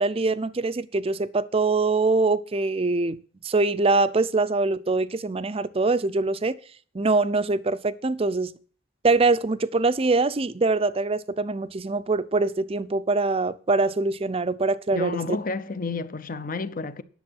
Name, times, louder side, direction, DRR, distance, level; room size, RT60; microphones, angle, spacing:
voice 1, 0.0-6.6 6.9-8.5 9.0-15.2, right 3 dB, 30° right, 0.5 m, -23 dB
voice 2, 14.9-17.0, left 3 dB, 45° left, 0.7 m, -30 dB
10.5 x 6.9 x 6.3 m
head